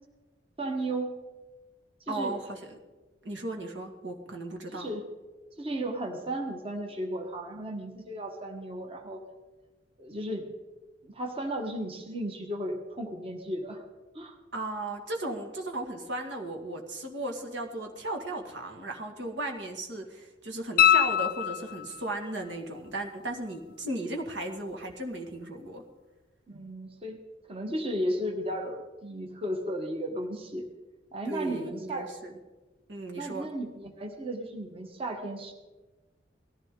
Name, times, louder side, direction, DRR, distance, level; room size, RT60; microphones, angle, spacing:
voice 1, 0.6-1.2 2.1-2.3 4.7-5.1 5.6-9.2 10.0-10.5 11.0-13.8 14.1-14.4 26.5-27.2 27.5-30.7 31.1-32.1 33.2-35.5, right 1 dB, 30° right, 4 dB, 1.4 m, -34 dB
voice 2, 2.1-2.8 3.2-4.9 14.5-25.8 31.2-32.3 32.9-33.5, right 2 dB, 80° right, 3 dB, 2.1 m, -36 dB
sound 1, 20.8-22.1 24.9-25.0, left 10 dB, 50° left, 0.4 m, -23 dB
19.0 x 14.5 x 3.8 m, 1.2 s
head